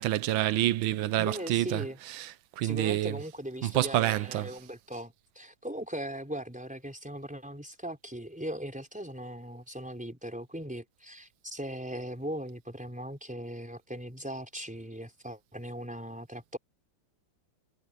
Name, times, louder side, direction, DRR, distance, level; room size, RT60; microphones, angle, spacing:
voice 1, 0.0-1.8 2.2-2.3 2.6-3.2 3.6-4.5, right 14 dB, 85° right, 1.5 m, -27 dB
voice 2, 1.2-2.0 2.6-16.6, right 1 dB, 5° right, 4.3 m, -39 dB
omnidirectional pair, 2.1 m